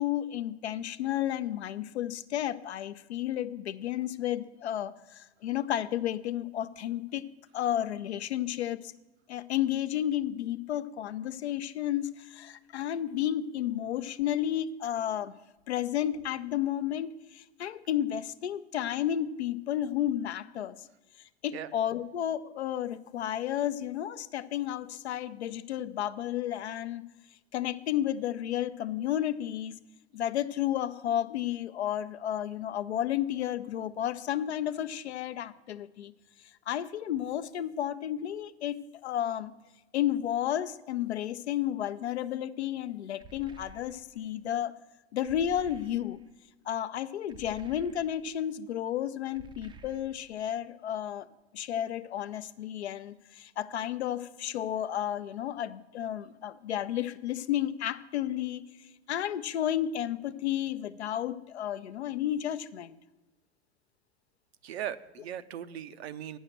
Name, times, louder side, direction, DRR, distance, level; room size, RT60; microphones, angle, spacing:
voice 1, 0.0-7.2 7.5-8.9 9.3-15.3 15.7-20.9 21.4-27.1 27.5-29.7 30.1-36.1 36.7-38.8 39.0-39.5 39.9-44.7 45.1-46.2 46.7-51.3 51.5-58.7 59.1-63.0, left 11 dB, 75° left, 13 dB, 0.6 m, -32 dB
sound 1, 43.2-44.3 45.2-46.3 47.3-48.4 49.3-50.4, right 5 dB, 15° right, 0.4 m, -52 dB
voice 2, 64.6-66.4, right 10 dB, 70° right, 13 dB, 0.6 m, -38 dB
9.0 x 6.4 x 7.8 m, 1.1 s
hypercardioid pair, 90°, 33 cm